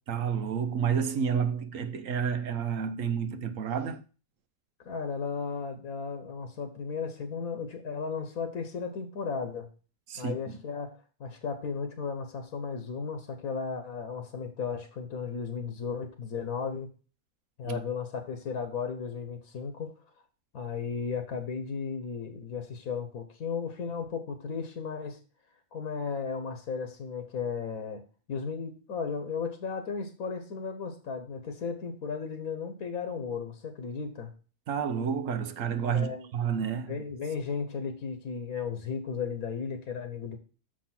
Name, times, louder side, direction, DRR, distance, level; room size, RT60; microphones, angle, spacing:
voice 1, 0.1-4.0 10.1-10.6 17.6-17.8 34.7-37.0, right 7 dB, 70° right, 1.2 m, -30 dB
voice 2, 4.8-9.7 10.2-10.9 11.2-16.9 17.6-19.9 20.5-25.2 25.7-28.0 28.3-34.3 35.9-36.3 36.9-40.4, left 5 dB, 90° left, 1.6 m, -35 dB
6.5 x 5.2 x 5.8 m
omnidirectional pair, 1.4 m